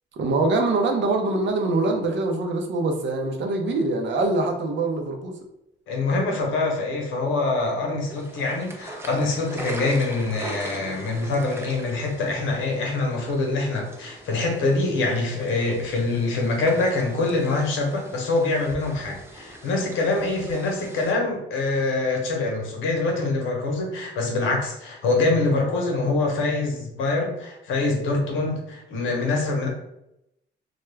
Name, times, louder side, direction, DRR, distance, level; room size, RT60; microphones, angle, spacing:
voice 1, 0.1-5.3, right 2 dB, 65° right, 3 dB, 0.6 m, -24 dB
voice 2, 5.9-29.7, left 3 dB, 80° left, 1 dB, 0.8 m, -24 dB
sound 1, 8.1-21.1, right 2 dB, 15° right, 0.4 m, -41 dB
2.3 x 2.1 x 3.2 m, 0.83 s
cardioid pair, 90°, 20 cm